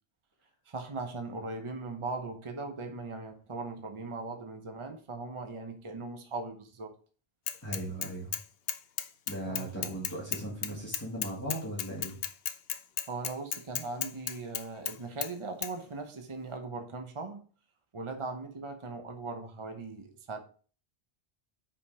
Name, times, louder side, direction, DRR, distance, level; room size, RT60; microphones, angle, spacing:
voice 1, 0.7-6.9 9.4-10.0 13.1-17.4 17.9-20.4, right 3 dB, 30° right, 6 dB, 1.0 m, -39 dB
Bicycle / Mechanisms, 7.5-8.4 8.7-15.0 15.2-15.3 15.6-15.7, left 9 dB, 70° left, 0.9 m, -34 dB
voice 2, 7.6-8.4 9.3-12.2, right 1 dB, 15° left, -5 dB, 2.2 m, -38 dB
5.7 x 5.1 x 4.9 m, 0.40 s
omnidirectional pair, 1.1 m